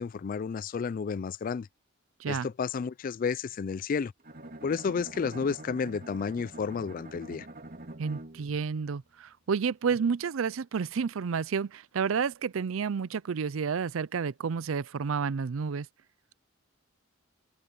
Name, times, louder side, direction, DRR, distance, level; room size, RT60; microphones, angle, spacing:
voice 1, 0.0-1.7 2.3-4.1 4.6-7.5, left 5 dB, 45° left, 0.3 m, -31 dB
Bowed string instrument, 4.2-8.6, right 1 dB, 45° right, 2.5 m, -45 dB
voice 2, 8.0-15.9, right 6 dB, 80° right, 0.5 m, -30 dB
open air
head